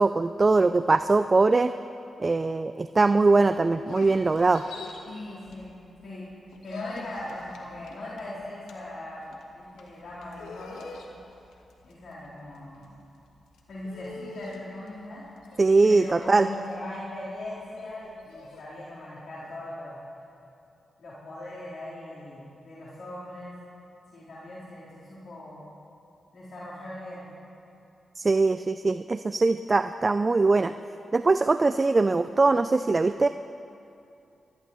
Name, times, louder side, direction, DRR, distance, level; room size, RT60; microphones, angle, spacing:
voice 1, 0.0-1.7 2.2-4.6 15.6-16.5 28.2-30.7 31.1-33.3, right 3 dB, 40° right, 11 dB, 0.4 m, -21 dB
sound 1, 3.8-6.0 6.3-18.6, left 4 dB, 90° left, 1.2 m, -46 dB
voice 2, 5.1-5.7 6.0-6.3 6.6-9.3 9.5-10.9 11.8-12.9 13.7-15.2 15.8-20.0 21.0-23.6 24.1-25.6 26.3-27.3, left 1 dB, 70° left, -10 dB, 4.0 m, -39 dB
21.5 x 14.0 x 3.1 m, 2.7 s
supercardioid pair, 45°, 0 cm